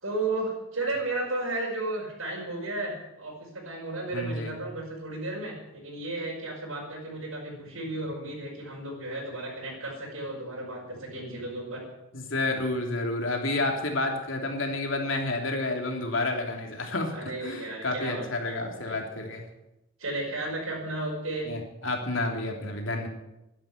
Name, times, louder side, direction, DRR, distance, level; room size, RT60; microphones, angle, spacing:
voice 1, 0.0-11.8 17.1-18.8 20.0-21.5, right 2 dB, 80° right, -4 dB, 5.6 m, -34 dB
voice 2, 4.1-4.5 12.1-17.1 17.4-19.4 21.5-23.1, left 2 dB, 65° left, 2 dB, 3.1 m, -30 dB
12.0 x 11.0 x 9.7 m, 0.93 s
head